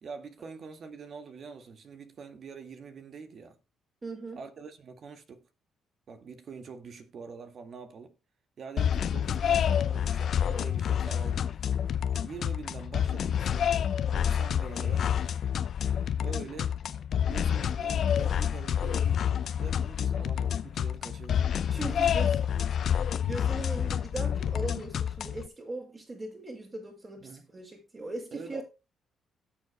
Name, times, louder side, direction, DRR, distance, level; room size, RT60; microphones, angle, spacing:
voice 1, 0.0-3.6 4.4-5.4 6.1-8.2 8.6-11.6 12.2-15.4 16.2-16.8 17.3-21.5 21.8-22.3 22.5-22.8 27.2-27.5 28.3-28.6, right 5 dB, 55° right, 1.9 m, -45 dB
voice 2, 4.0-4.4 18.8-18.9 21.7-22.4 23.2-28.6, right 2 dB, 30° right, 5.4 m, -39 dB
sound 1, 8.8-25.5, left 8 dB, 60° left, 0.7 m, -28 dB
17.5 x 7.2 x 2.2 m
cardioid pair, 90°, 0 cm